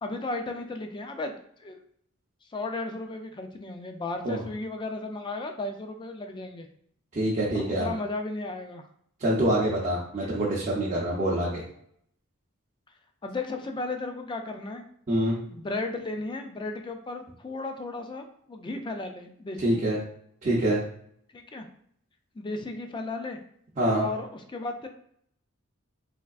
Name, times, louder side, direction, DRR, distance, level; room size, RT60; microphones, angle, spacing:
voice 1, 0.0-1.3 1.6-1.8 2.5-6.7 7.5-8.8 13.2-14.8 15.5-19.9 21.3-21.7 22.4-23.4 23.9-24.9, left 2 dB, 20° left, 5 dB, 0.3 m, -34 dB
voice 2, 7.1-7.9 9.2-11.6 15.1-15.4 19.6-20.0 20.4-20.8 23.8-24.0, right 1 dB, 35° right, -6 dB, 0.6 m, -25 dB
3.4 x 3.3 x 2.3 m, 0.67 s
head